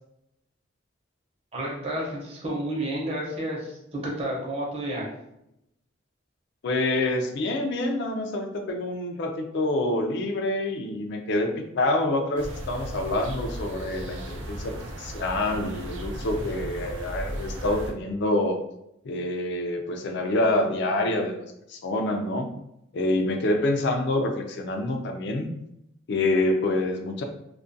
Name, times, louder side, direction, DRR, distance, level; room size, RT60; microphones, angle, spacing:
voice 1, 1.5-5.1, right 1 dB, 30° right, -4 dB, 0.6 m, -31 dB
voice 2, 6.6-18.6 19.0-21.4 21.7-22.5 22.9-25.5 26.1-27.2, left 2 dB, 60° left, 4 dB, 0.4 m, -26 dB
sound 1, 12.4-17.9, right 1 dB, 70° right, 0.5 m, -36 dB
2.4 x 2.2 x 2.5 m, 0.81 s
head